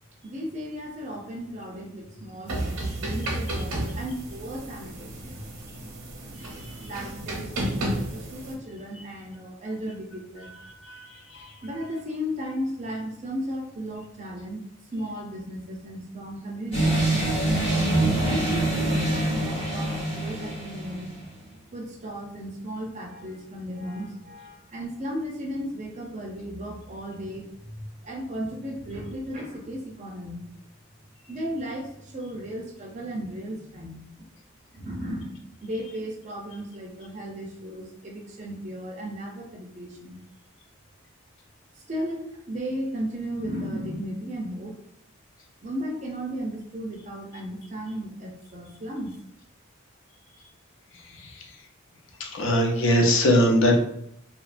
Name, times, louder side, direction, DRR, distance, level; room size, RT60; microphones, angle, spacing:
voice 1, 0.2-5.4 6.8-10.8 11.0-11.2 11.6-17.3 18.2-21.1 21.7-30.4 31.3-34.3 34.7-40.2 41.7-44.8 45.6-49.2, equal, 35° right, 0 dB, 0.4 m, -35 dB
sound 1, 2.5-8.5, right 1 dB, 90° right, 0.6 m, -32 dB
sound 2, 16.7-21.1, right 1 dB, 25° left, 0.8 m, -25 dB
sound 3, 17.8-25.9 26.4-26.5, equal, 80° left, 1.3 m, -39 dB
voice 2, 52.2-53.7, left 1 dB, 65° left, 1 dB, 0.5 m, -20 dB
2.7 x 2.1 x 2.4 m, 0.73 s
head